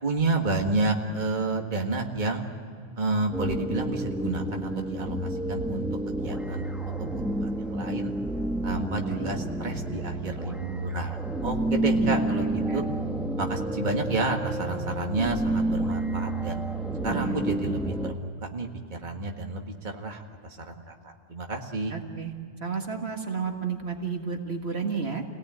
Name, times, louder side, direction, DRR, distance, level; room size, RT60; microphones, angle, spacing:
voice 1, 0.0-2.4 3.0-8.1 8.6-12.8 13.4-16.6 17.0-21.9, right 3 dB, 40° right, 2 dB, 1.9 m, -30 dB
sound 1, 3.3-18.1, right 1 dB, ahead, 1.3 m, -30 dB
voice 2, 12.0-12.8 17.1-17.4 21.9-22.3 22.6-25.2, right 5 dB, 65° right, 3 dB, 2.0 m, -32 dB
27.5 x 18.0 x 9.2 m, 2.3 s
omnidirectional pair, 1.2 m